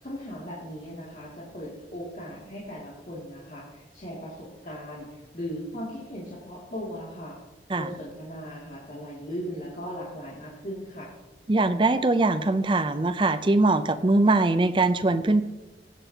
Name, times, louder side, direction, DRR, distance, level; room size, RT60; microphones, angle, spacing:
voice 1, 0.0-7.3 7.7-11.1, equal, 45° left, -7 dB, 2.4 m, -38 dB
voice 2, 11.5-15.4, right 2 dB, 25° right, 11 dB, 0.5 m, -22 dB
16.0 x 7.9 x 2.8 m, 1.2 s
head